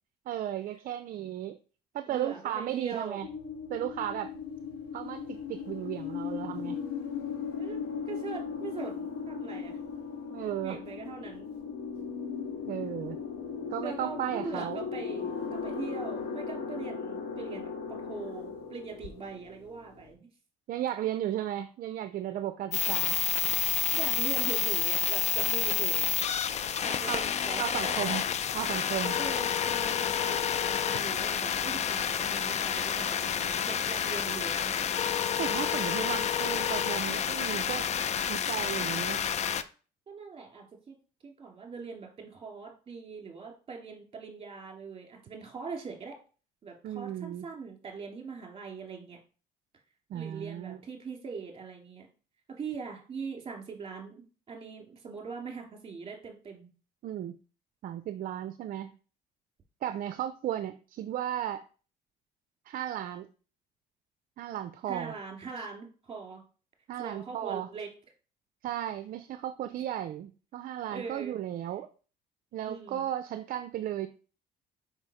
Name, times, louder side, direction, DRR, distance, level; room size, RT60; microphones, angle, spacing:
voice 1, 0.3-1.6 1.9-3.3 3.7-4.3 4.9-6.8 10.3-10.8 12.7-13.2 13.7-14.8 20.7-23.2 27.1-27.2 27.6-28.2 28.5-29.2 35.4-37.9 38.3-39.2 46.8-47.5 50.1-50.8 57.0-57.3 57.8-58.9 59.8-61.6 62.7-63.3 64.4-65.1 66.9-67.7 68.6-71.9 72.5-74.1, right 11 dB, 55° right, 11 dB, 0.5 m, -35 dB
voice 2, 2.1-3.2 7.5-9.8 10.6-11.5 13.8-20.3 23.9-26.4 26.8-28.0 29.2-34.8 40.1-41.0 41.2-46.1 46.6-49.2 50.1-52.1 52.5-56.7 64.9-66.4 67.0-67.9 70.9-71.4 72.6-73.1, right 5 dB, 35° right, 2 dB, 2.6 m, -42 dB
sound 1, 3.2-20.1, left 6 dB, 75° left, 1.9 m, -37 dB
sound 2, 22.7-39.6, left 8 dB, 40° left, 0.5 m, -29 dB
5.5 x 5.2 x 4.9 m, 0.38 s
cardioid pair, 110°, 17 cm